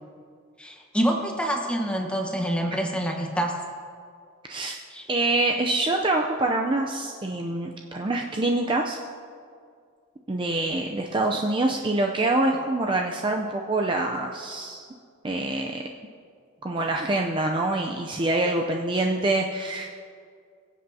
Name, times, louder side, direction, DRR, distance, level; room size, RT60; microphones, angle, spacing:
voice 1, 0.6-3.6 4.9-5.1, equal, 5° left, 2 dB, 1.0 m, -26 dB
voice 2, 5.1-9.0 10.3-14.9 15.2-15.8 16.6-19.9, right 2 dB, 25° right, 1 dB, 0.5 m, -25 dB
22.5 x 7.8 x 2.7 m, 2.2 s
head